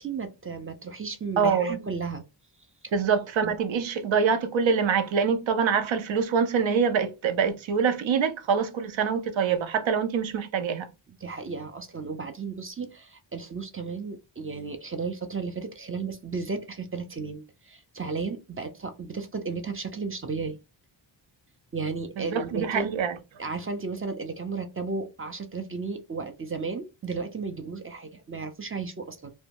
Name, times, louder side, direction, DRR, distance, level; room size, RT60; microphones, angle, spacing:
voice 1, 0.0-2.2 2.8-2.9 3.4-3.5 11.2-20.6 21.7-22.9 23.4-29.3, right 4 dB, 30° right, 0.4 m, -34 dB
voice 2, 1.4-1.8 2.9-10.9 22.2-23.2, right 6 dB, 70° right, 0.6 m, -25 dB
2.6 x 2.2 x 2.9 m
wide cardioid pair, 105°, 48 cm